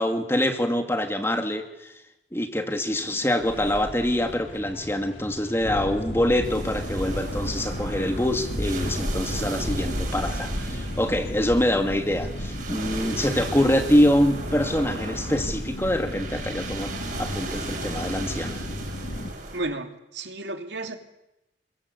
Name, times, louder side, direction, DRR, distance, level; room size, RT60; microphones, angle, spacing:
voice 1, 0.0-1.9 2.3-16.9 17.2-18.6, left 1 dB, 15° left, 6 dB, 2.3 m, -25 dB
sound 1, 2.7-15.8, equal, 45° left, 5.4 m, -43 dB
sound 2, 5.6-19.3, equal, 65° left, 3.1 m, -33 dB
sound 3, 6.4-19.6, right 2 dB, 45° right, 7.9 m, -37 dB
voice 2, 19.5-21.0, right 2 dB, 85° right, 6 dB, 2.7 m, -32 dB
28.0 x 23.0 x 8.3 m, 0.88 s
head